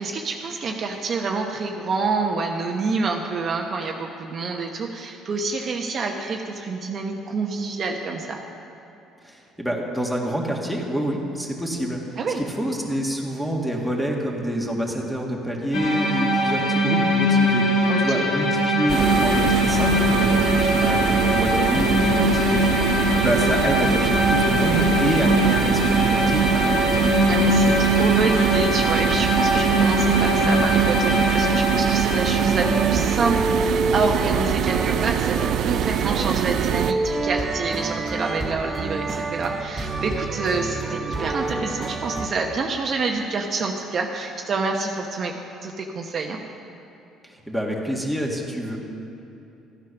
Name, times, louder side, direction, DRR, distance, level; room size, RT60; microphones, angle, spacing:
voice 1, 0.0-8.4 12.2-12.4 17.9-18.3 27.3-46.4, right 4 dB, 45° right, 2 dB, 1.0 m, -27 dB
voice 2, 9.2-12.0 12.4-22.8 23.2-27.1 47.2-48.8, equal, ahead, -1 dB, 1.9 m, -27 dB
sound 1, 15.7-33.2, equal, 85° left, 2.2 m, -21 dB
sound 2, 18.9-36.9, right 11 dB, 60° right, 0.4 m, -24 dB
sound 3, 32.6-42.3, right 2 dB, 30° right, 1.2 m, -28 dB
14.0 x 9.6 x 5.9 m, 2.9 s
cardioid pair, 110°, 0 cm